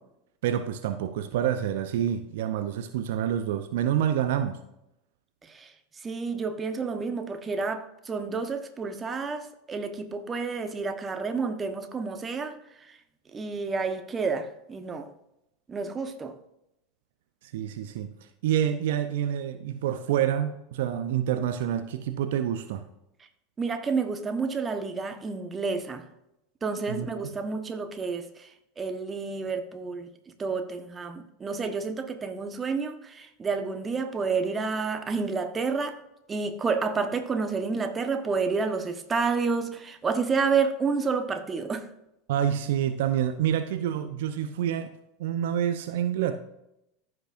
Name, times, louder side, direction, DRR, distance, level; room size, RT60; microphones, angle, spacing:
voice 1, 0.4-4.6 17.5-18.1 18.4-22.8 26.9-27.1 42.3-44.9 45.2-46.4, right 10 dB, 65° right, 0.6 m, -27 dB
voice 2, 6.0-12.6 12.9-13.0 13.3-15.1 15.7-16.3 23.6-26.0 26.6-28.5 28.8-30.1 30.4-36.0 36.3-41.9, right 4 dB, 25° right, 1.1 m, -30 dB
15.0 x 5.9 x 2.6 m
hypercardioid pair, 85°, 0 cm